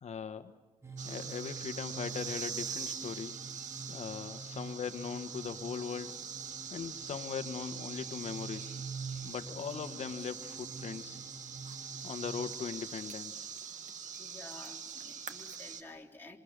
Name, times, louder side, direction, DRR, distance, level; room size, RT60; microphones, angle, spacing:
voice 1, 0.0-0.5 1.0-3.3 3.9-6.2 6.7-8.7 9.2-11.2 12.0-13.5, left 7 dB, 60° left, 9 dB, 1.3 m, -40 dB
sound 1, 0.8-12.6, right 4 dB, 20° right, 1.5 m, -47 dB
sound 2, 1.0-15.8, right 7 dB, 80° right, 1.9 m, -43 dB
voice 2, 14.2-16.4, left 2 dB, 15° left, -1 dB, 3.8 m, -51 dB
27.0 x 25.5 x 6.7 m, 1.2 s
cardioid pair, 75°, 13 cm